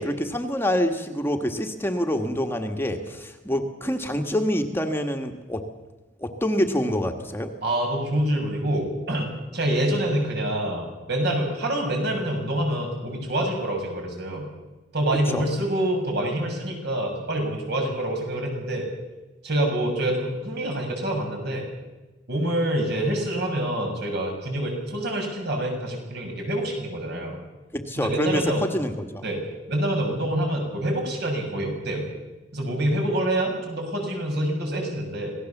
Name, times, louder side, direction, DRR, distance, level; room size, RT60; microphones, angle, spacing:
voice 1, 0.0-5.6 6.2-7.5 15.3-15.4 27.7-29.2, equal, 15° left, 5 dB, 1.5 m, -26 dB
voice 2, 7.6-9.3 9.5-14.5 14.9-18.9 19.4-21.7 22.3-27.4 28.0-28.7 29.2-29.4 29.7-32.0 32.5-35.3, right 1 dB, 65° right, 2 dB, 7.2 m, -26 dB
26.5 x 18.5 x 7.3 m, 1.1 s
head